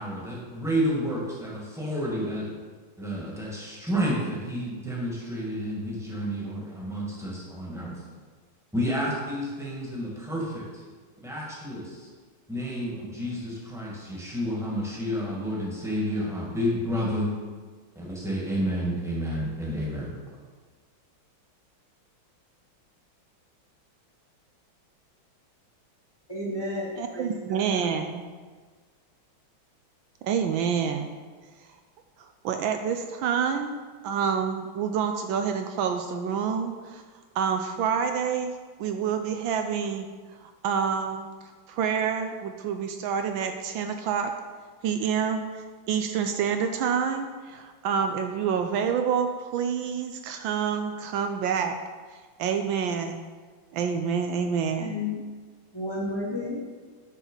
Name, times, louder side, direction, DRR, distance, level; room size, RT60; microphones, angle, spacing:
voice 1, 0.0-2.5 3.0-8.0 8.7-10.7 11.2-12.1 12.5-17.3 17.9-20.2, equal, ahead, -5 dB, 1.6 m, -30 dB
voice 2, 26.3-27.6 54.8-55.2 55.7-56.6, left 2 dB, 15° left, -4 dB, 0.9 m, -32 dB
voice 3, 27.0-28.2 30.2-31.1 31.6-31.7 32.2-33.8 34.0-37.0 37.3-38.5 38.8-40.1 40.4-44.3 44.8-51.7 52.1-53.2 53.7-54.9, right 7 dB, 75° right, 6 dB, 1.3 m, -28 dB
9.0 x 4.0 x 5.4 m, 1.4 s
omnidirectional pair, 2.2 m